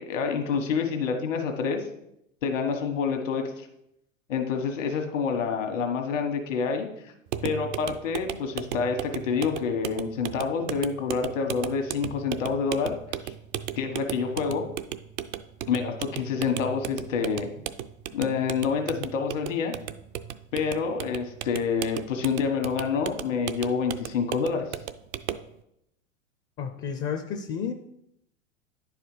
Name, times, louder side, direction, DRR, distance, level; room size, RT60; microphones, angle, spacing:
voice 1, 0.0-1.8 2.4-3.7 4.3-6.9 7.4-12.9 13.2-13.3 13.8-14.6 15.7-17.5 18.1-19.7 20.5-24.7, left 5 dB, 70° left, 5 dB, 1.5 m, -27 dB
sound 1, 7.3-25.5, right 11 dB, 35° right, 0.4 m, -36 dB
voice 2, 26.6-27.7, left 7 dB, 30° left, 8 dB, 0.5 m, -31 dB
10.0 x 4.9 x 4.8 m, 0.80 s
hypercardioid pair, 100°, 40 cm